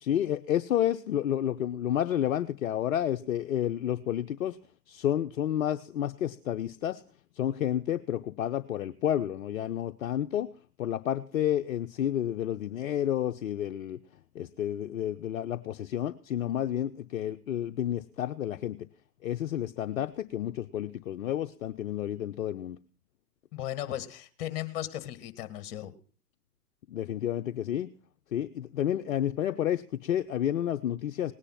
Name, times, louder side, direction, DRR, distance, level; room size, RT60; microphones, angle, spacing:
voice 1, 0.0-4.6 4.9-7.0 7.4-10.5 10.8-14.0 14.3-18.9 19.2-22.8 26.9-27.9 28.3-31.3, left 11 dB, 60° left, 8 dB, 0.8 m, -30 dB
voice 2, 23.5-25.9, left 13 dB, 35° left, 12 dB, 1.8 m, -36 dB
18.5 x 9.9 x 5.8 m, 0.41 s
figure-of-eight pair, 120°, 48 cm